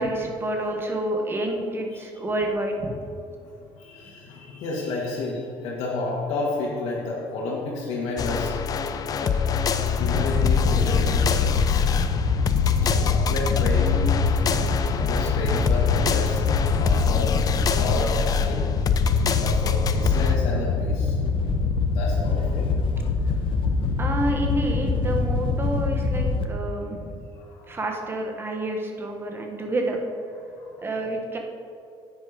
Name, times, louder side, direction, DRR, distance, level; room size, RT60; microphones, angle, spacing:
voice 1, 0.0-3.1 12.8-13.1 24.0-27.2 27.7-30.0 30.8-31.4, right 1 dB, 20° right, 2 dB, 1.4 m, -29 dB
voice 2, 3.4-8.7 9.2-9.4 9.8-11.8 12.8-14.5 14.9-16.4 16.7-18.6 19.2-21.2 21.9-22.7 27.4-27.8 30.5-30.9, left 2 dB, 80° left, -5 dB, 2.2 m, -31 dB
sound 1, 8.2-20.4, left 6 dB, 35° left, 0.6 m, -25 dB
Wind / Boat Water vehicle, 9.9-26.4, left 4 dB, 50° left, 1.0 m, -24 dB
9.6 x 9.3 x 5.3 m, 2.5 s
cardioid pair, 145°, 11 cm